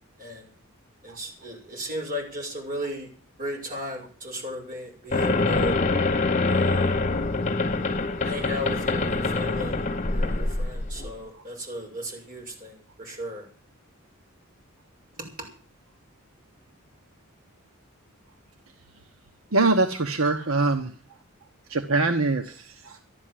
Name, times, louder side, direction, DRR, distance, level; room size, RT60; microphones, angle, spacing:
voice 1, 0.2-0.5 1.0-3.1 3.4-5.7 6.5-7.0 8.2-13.5 15.2-15.3, equal, 45° right, 1 dB, 6.4 m, -35 dB
sound 1, 5.1-11.1, left 3 dB, 35° left, 1.1 m, -25 dB
voice 2, 19.5-20.9 21.7-23.0, right 3 dB, 80° right, 6 dB, 1.2 m, -24 dB
13.5 x 11.0 x 7.7 m, 0.43 s
head